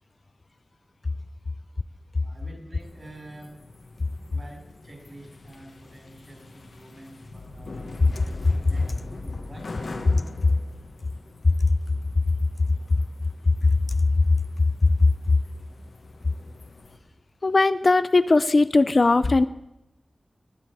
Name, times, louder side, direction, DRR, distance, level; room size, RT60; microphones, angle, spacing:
voice 1, 2.2-3.6 4.3-7.9 8.6-8.9 9.2-9.9, right 1 dB, 35° right, 1 dB, 4.9 m, -47 dB
sound 1, 2.8-17.0, left 2 dB, 80° left, 1.5 m, -43 dB
voice 2, 17.4-19.5, left 3 dB, 50° left, 14 dB, 0.4 m, -19 dB
20.5 x 8.5 x 4.8 m, 0.88 s
wide cardioid pair, 75°, 0 cm